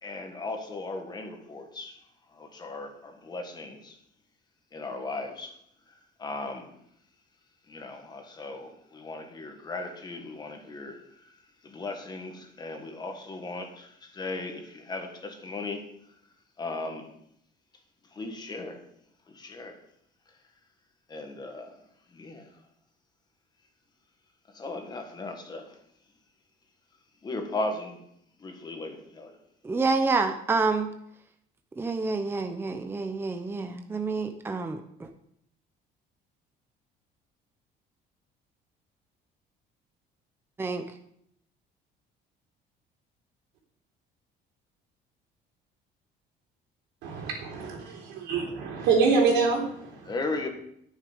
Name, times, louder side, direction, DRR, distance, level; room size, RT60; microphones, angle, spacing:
voice 1, 0.0-2.0 2.3-4.0 4.7-5.6 5.9-6.7 7.7-11.2 11.6-15.9 16.6-17.1 18.1-18.8 19.3-19.8 21.1-21.8 22.1-22.5 24.5-25.8 27.2-28.0 28.4-29.3 50.0-50.5, left 2 dB, 25° left, 1.6 m, -37 dB
voice 2, 29.6-30.9 31.8-35.1 40.6-40.8, right 4 dB, 15° right, 0.7 m, -28 dB
voice 3, 47.0-50.1, right 4 dB, 85° right, 3.9 m, -26 dB
10.0 x 9.9 x 5.1 m
cardioid pair, 150°, 17 cm